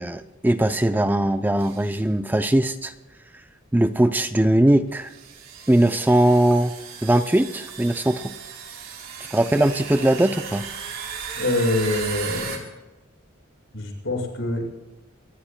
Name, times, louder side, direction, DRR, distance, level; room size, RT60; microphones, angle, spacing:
voice 1, 0.0-2.9 3.7-5.1 5.7-6.7 7.0-8.3 9.3-10.7, right 1 dB, 10° right, 9 dB, 0.4 m, -20 dB
sound 1, 1.6-1.9 2.9-3.0 4.1-4.2 5.0-12.6, right 6 dB, 70° right, 3.6 m, -36 dB
voice 2, 11.3-12.6 13.7-14.7, left 2 dB, 70° left, 1 dB, 5.8 m, -25 dB
25.5 x 20.5 x 2.2 m, 1.1 s
head